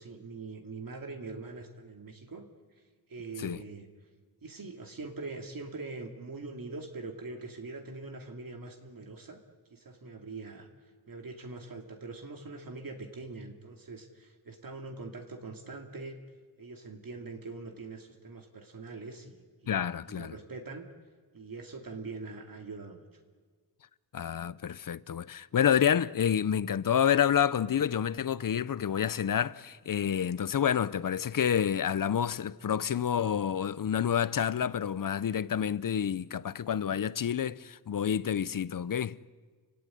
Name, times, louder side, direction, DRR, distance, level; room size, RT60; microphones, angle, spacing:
voice 1, 0.0-2.5 3.1-3.9 4.4-9.4 9.7-10.7 11.1-16.2 16.6-20.9 21.3-23.0, right 3 dB, 55° right, 2.6 m, -43 dB
voice 2, 19.7-20.3 24.1-39.2, left 8 dB, 50° left, 0.7 m, -28 dB
30.0 x 17.0 x 9.9 m
wide cardioid pair, 100°, 42 cm